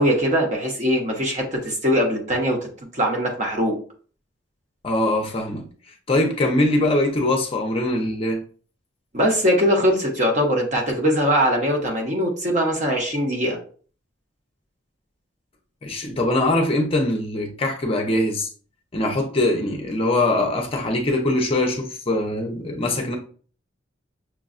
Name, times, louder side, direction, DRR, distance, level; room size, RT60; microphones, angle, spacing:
voice 1, 0.0-2.6 2.9-3.7 9.1-13.6, equal, 40° right, 0.8 m, -21 dB
voice 2, 4.8-5.7 6.1-8.4 15.8-18.5 18.9-23.2, left 1 dB, 30° left, 0.6 m, -22 dB
6.0 x 2.2 x 2.5 m
head